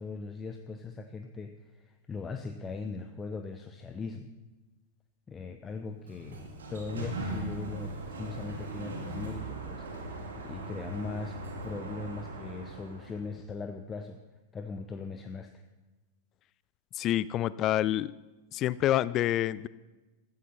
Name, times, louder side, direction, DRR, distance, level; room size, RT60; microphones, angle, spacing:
voice 1, 0.0-4.3 5.3-11.4 11.6-14.2 14.5-15.5, left 4 dB, 20° left, 7 dB, 0.8 m, -40 dB
Sliding door, 5.9-13.3, right 2 dB, 65° right, 2.5 m, -39 dB
voice 2, 17.0-18.1 18.5-19.7, left 13 dB, 35° left, 20 dB, 0.4 m, -27 dB
15.5 x 13.5 x 4.3 m, 1.2 s
figure-of-eight pair, 90°, 0 cm